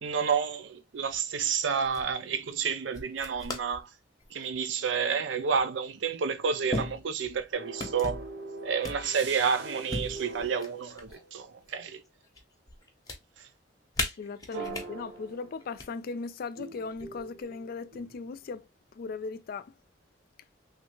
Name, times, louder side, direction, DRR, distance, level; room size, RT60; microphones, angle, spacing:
voice 1, 0.0-3.9 4.3-8.2 8.6-12.0, right 6 dB, 85° right, 0.5 m, -30 dB
sound 1, 1.0-1.4 1.8-2.1 2.9-3.8 4.2-4.6 5.6-5.7 6.7-7.4 7.8-8.3 8.8-9.4 9.9-11.2 11.6-12.4 12.7-13.2 13.9-14.9 15.6-15.9 16.9-17.4, left 2 dB, 20° left, 0.8 m, -37 dB
sound 2, 7.5-11.7 14.5-16.0 16.6-18.3, right 3 dB, 65° right, 0.8 m, -43 dB
voice 2, 14.2-19.7, left 4 dB, 55° left, 0.3 m, -38 dB
3.1 x 2.4 x 3.0 m
head